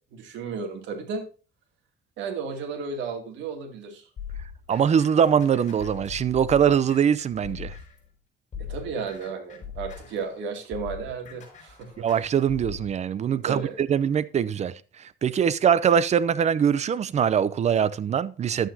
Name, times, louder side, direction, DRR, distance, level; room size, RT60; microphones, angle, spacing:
voice 1, 0.1-1.2 2.2-4.1 8.6-12.1 13.4-13.8, right 5 dB, 80° right, 2.5 m, -33 dB
sound 1, 4.2-8.1 8.5-12.9, left 7 dB, 40° left, 5.7 m, -41 dB
voice 2, 4.7-7.7 12.0-14.7 15.2-18.7, right 8 dB, 35° right, 0.6 m, -22 dB
11.5 x 8.9 x 2.7 m
cardioid pair, 125°, 19 cm